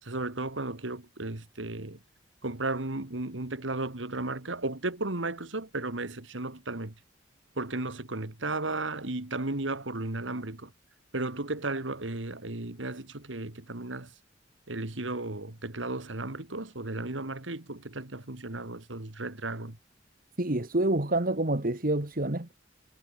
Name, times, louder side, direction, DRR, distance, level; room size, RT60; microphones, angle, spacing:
voice 1, 0.0-2.0 2.4-6.9 7.6-10.7 11.1-14.1 14.7-19.8, right 2 dB, 85° right, 2.3 m, -34 dB
voice 2, 20.4-22.5, right 2 dB, 50° right, 1.8 m, -27 dB
head